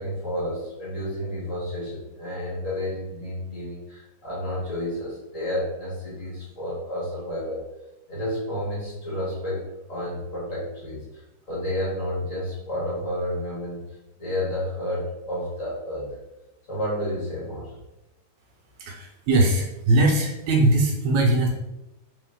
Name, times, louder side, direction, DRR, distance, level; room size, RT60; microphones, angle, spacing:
voice 1, 0.0-7.6 8.1-9.6 9.9-11.2 11.5-13.8 14.2-16.2 16.7-17.7, left 1 dB, 40° left, -7 dB, 1.1 m, -30 dB
voice 2, 18.8-21.5, right 2 dB, 80° right, 0 dB, 1.8 m, -20 dB
3.8 x 3.8 x 3.5 m, 0.94 s
omnidirectional pair, 3.6 m